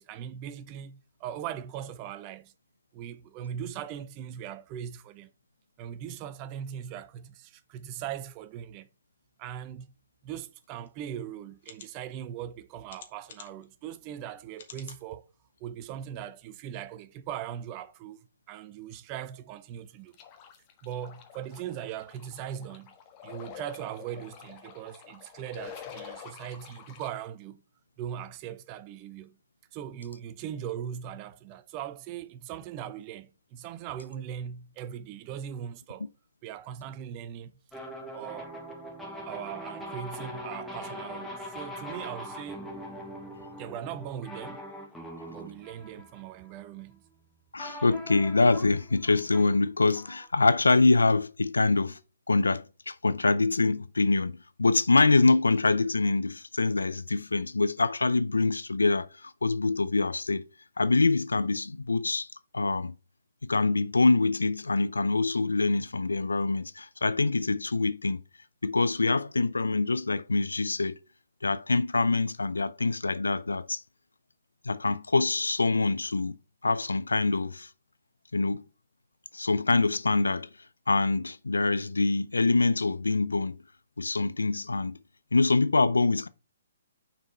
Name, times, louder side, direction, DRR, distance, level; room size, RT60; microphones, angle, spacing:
voice 1, 0.0-2.5 2.9-5.3 5.8-8.9 9.4-9.9 10.2-15.2 15.6-20.1 20.8-22.9 23.2-27.6 28.0-29.4 29.7-36.1 36.4-37.5 38.1-38.5 39.3-42.8 43.5-44.6 45.3-47.0, right 9 dB, 30° right, 0.6 m, -40 dB
sound 1, 10.8-10.9 11.6-11.9 12.9-13.7 14.5-15.0 15.6-15.7 16.0-16.1, left 7 dB, 55° left, 1.4 m, -48 dB
sound 2, 20.1-27.1, left 8 dB, 30° left, 1.3 m, -47 dB
sound 3, 37.7-46.9 47.6-50.3, equal, 5° left, 1.5 m, -42 dB
voice 2, 47.5-52.0 52.3-60.4 60.8-62.3 62.5-62.9 63.4-68.2 68.6-71.0 71.4-73.8 74.6-76.4 76.6-77.7 78.3-78.6 79.3-80.5 80.9-83.5 84.0-84.9 85.3-86.3, left 3 dB, 85° left, 0.5 m, -25 dB
6.5 x 4.5 x 4.2 m
figure-of-eight pair, 135°, 0 cm